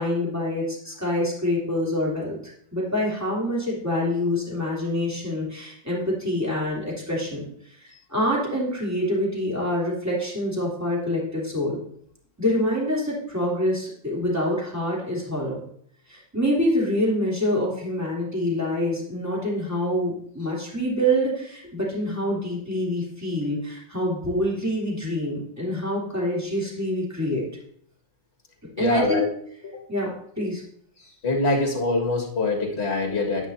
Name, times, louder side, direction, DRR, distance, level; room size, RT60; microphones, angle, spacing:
voice 1, 0.0-2.4 2.7-11.8 12.4-15.6 16.1-27.4 28.8-29.2 29.9-30.6, equal, 10° right, -5 dB, 3.1 m, -26 dB
voice 2, 28.8-29.3 29.6-29.8 31.2-33.5, left 2 dB, 35° left, 1 dB, 2.0 m, -24 dB
10.5 x 9.2 x 2.7 m, 0.64 s
omnidirectional pair, 2.0 m